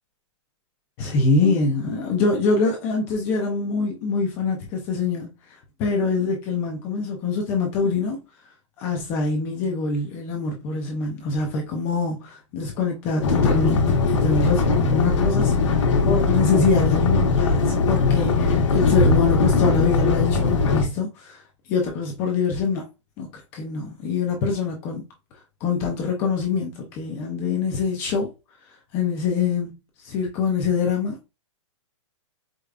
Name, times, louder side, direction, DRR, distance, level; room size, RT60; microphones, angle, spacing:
voice 1, 1.0-8.2 8.8-21.4 21.7-22.9 23.2-25.0 25.6-28.3 28.9-29.7 30.0-31.3, left 4 dB, 15° left, 0.3 m, -24 dB
sound 1, 13.2-20.8, left 4 dB, 75° left, 1.0 m, -20 dB
4.8 x 2.2 x 2.3 m
hypercardioid pair, 170°, 16 cm